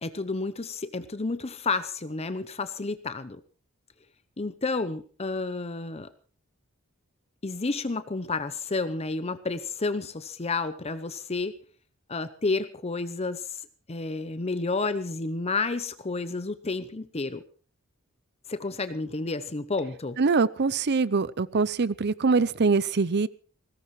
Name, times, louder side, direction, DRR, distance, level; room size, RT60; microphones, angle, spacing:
voice 1, 0.0-3.4 4.4-6.1 7.4-11.5 12.1-17.4 18.5-20.2, left 3 dB, 30° left, 12 dB, 0.8 m, -31 dB
voice 2, 20.2-23.3, right 4 dB, 50° right, 19 dB, 0.6 m, -23 dB
21.0 x 17.5 x 3.2 m, 0.41 s
head